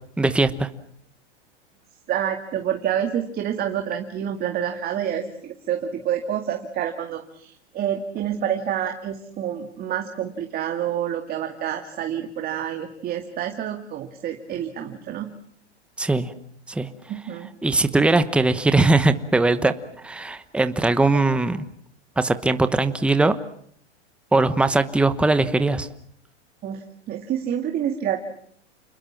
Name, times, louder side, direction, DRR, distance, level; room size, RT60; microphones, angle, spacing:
voice 1, 0.2-0.7 16.0-16.3 16.7-16.9 17.6-21.6 22.2-23.4 24.3-25.9, right 2 dB, 5° right, 11 dB, 1.1 m, -20 dB
voice 2, 2.1-15.3 17.1-17.5 26.6-28.2, right 9 dB, 25° right, 5 dB, 2.1 m, -28 dB
29.0 x 21.0 x 7.3 m, 0.65 s
hypercardioid pair, 135°, 34 cm